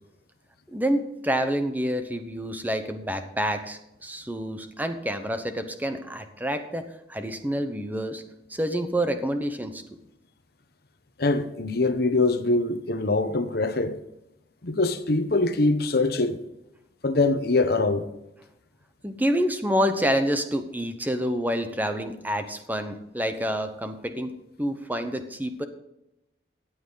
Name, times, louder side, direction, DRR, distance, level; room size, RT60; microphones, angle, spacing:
voice 1, 0.7-8.2 8.5-9.8 19.0-24.3 24.6-25.7, equal, 10° right, 0.9 m, -28 dB
voice 2, 11.2-14.0 14.6-16.4 17.0-18.1, left 2 dB, 55° left, 1.0 m, -23 dB
15.0 x 8.8 x 4.0 m
head